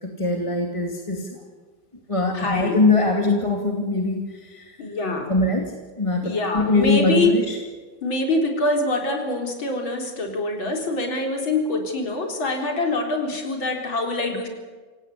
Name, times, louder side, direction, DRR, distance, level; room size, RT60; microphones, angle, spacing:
voice 1, 0.0-1.4 2.1-4.7 5.3-7.6, left 2 dB, 15° left, 2 dB, 2.5 m, -22 dB
voice 2, 2.3-2.8 4.8-5.3 6.2-7.3 8.0-14.5, left 2 dB, 85° left, 2 dB, 4.6 m, -24 dB
26.5 x 17.0 x 8.4 m, 1.4 s
omnidirectional pair, 2.1 m